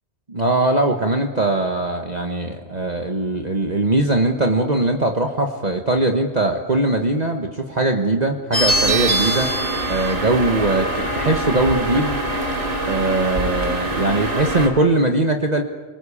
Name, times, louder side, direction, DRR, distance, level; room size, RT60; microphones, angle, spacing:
voice 1, 0.3-9.5 9.9-12.2 12.8-15.6, right 2 dB, 35° right, 4 dB, 1.5 m, -20 dB
sound 1, 8.5-14.7, right 1 dB, 75° right, 3.7 m, -23 dB
29.0 x 21.5 x 8.6 m, 1.4 s
omnidirectional pair, 1.2 m